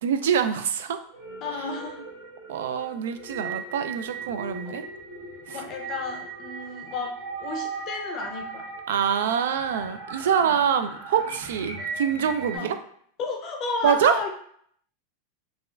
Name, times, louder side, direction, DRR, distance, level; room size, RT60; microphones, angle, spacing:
voice 1, 0.0-1.0 1.6-1.7 2.5-4.8 5.5-5.6 8.9-12.8 13.8-14.2, right 8 dB, 80° right, 9 dB, 0.3 m, -25 dB
sound 1, 1.0-12.6, right 4 dB, 60° right, 1.0 m, -38 dB
voice 2, 1.4-2.1 4.7-4.8 5.5-8.7 12.5-12.7 13.2-14.3, left 4 dB, 25° left, 3 dB, 0.5 m, -32 dB
4.1 x 2.3 x 2.2 m, 0.63 s
supercardioid pair, 175°, 0 cm